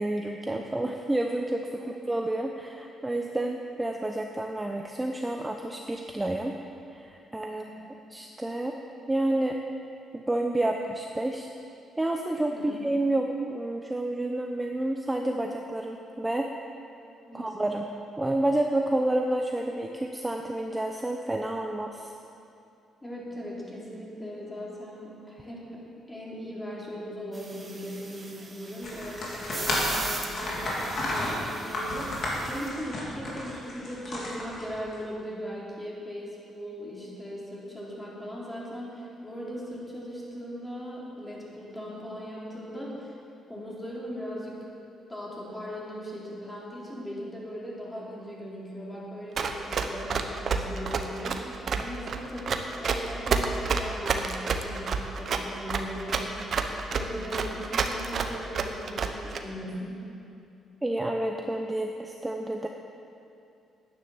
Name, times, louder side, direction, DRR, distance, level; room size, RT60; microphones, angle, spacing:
voice 1, 0.0-6.5 6.9-7.6 8.1-8.7 9.1-9.6 10.1-11.5 12.0-16.5 17.3-17.9 18.2-22.1 60.8-62.7, right 1 dB, 10° right, 2 dB, 0.8 m, -29 dB
voice 2, 7.5-7.9 12.5-12.8 17.3-17.5 23.0-25.8 26.1-43.2 43.5-44.7 45.1-56.5 56.9-60.0, equal, 15° left, -5 dB, 3.7 m, -39 dB
sound 1, 27.3-32.7, right 3 dB, 30° right, 1.7 m, -40 dB
sound 2, 28.8-34.9, left 1 dB, 55° left, 3.3 m, -32 dB
Run, 49.4-59.4, right 5 dB, 55° right, 0.9 m, -28 dB
10.0 x 9.8 x 7.2 m, 2.6 s
cardioid pair, 90°, 0 cm